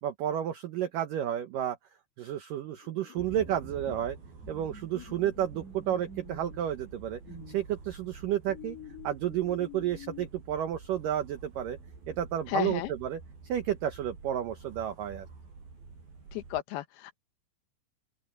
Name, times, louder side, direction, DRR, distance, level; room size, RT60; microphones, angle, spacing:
voice 1, 0.0-1.8 2.2-4.2 4.5-7.2 7.5-8.8 9.0-11.8 12.1-13.2 13.5-15.3, right 10 dB, 80° right, 1.9 m, -31 dB
sound 1, 2.6-4.1 4.4-6.7 7.2-7.6 8.5-10.3, left 5 dB, 30° left, 1.8 m, -48 dB
sound 2, 3.2-16.6, right 4 dB, 55° right, 8.5 m, -48 dB
voice 2, 12.5-12.9 16.3-17.2, left 15 dB, 70° left, 2.9 m, -33 dB
open air
omnidirectional pair, 5.3 m